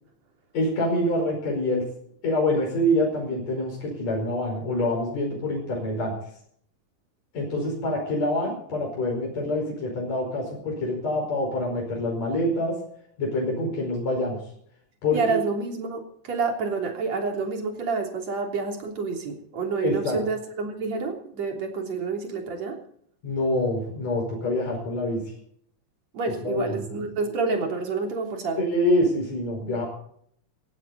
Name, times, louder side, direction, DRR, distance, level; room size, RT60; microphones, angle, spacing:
voice 1, 0.5-1.8 2.2-6.1 7.3-12.8 13.2-14.4 15.0-15.2 19.8-20.2 23.2-25.2 26.4-26.8 28.6-29.8, left 1 dB, 65° left, -1 dB, 6.3 m, -26 dB
voice 2, 15.1-22.8 26.1-28.6, right 4 dB, 60° right, 2 dB, 4.5 m, -28 dB
18.0 x 16.0 x 4.2 m, 0.64 s
omnidirectional pair, 3.4 m